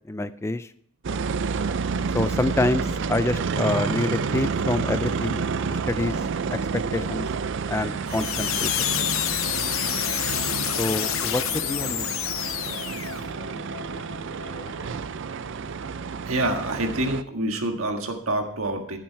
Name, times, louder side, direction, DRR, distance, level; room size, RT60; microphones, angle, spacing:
voice 1, 0.1-0.7 2.1-5.4 5.7-6.2 6.5-7.3 7.7-8.7 10.8-12.1, left 2 dB, 10° left, 12 dB, 0.3 m, -27 dB
sound 1, 1.0-17.2, right 5 dB, 60° right, 0.4 m, -29 dB
sound 2, 8.1-13.3, left 12 dB, 70° left, 0.7 m, -28 dB
sound 3, 9.5-15.0, left 3 dB, 50° left, 1.4 m, -43 dB
voice 2, 16.2-19.0, right 1 dB, 80° right, 4 dB, 1.5 m, -27 dB
14.5 x 7.6 x 4.6 m, 0.64 s
head